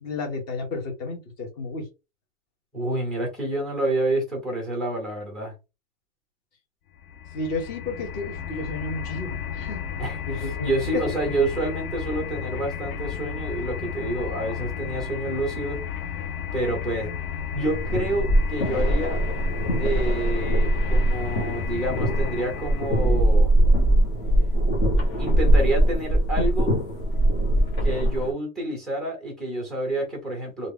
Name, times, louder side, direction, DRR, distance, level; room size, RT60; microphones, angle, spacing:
voice 1, 0.0-1.9 7.3-9.8 10.3-11.0, left 3 dB, 25° left, 1.1 m, -32 dB
voice 2, 2.7-5.5 10.0-15.8 16.5-17.1 17.5-19.2 19.8-23.5 25.2-26.7 27.5-30.7, right 2 dB, ahead, 0.6 m, -28 dB
sound 1, 7.0-23.2, left 8 dB, 90° left, 0.7 m, -33 dB
sound 2, 17.5-28.3, right 1 dB, 40° left, 1.3 m, -21 dB
3.1 x 2.5 x 3.5 m
supercardioid pair, 175°, 41 cm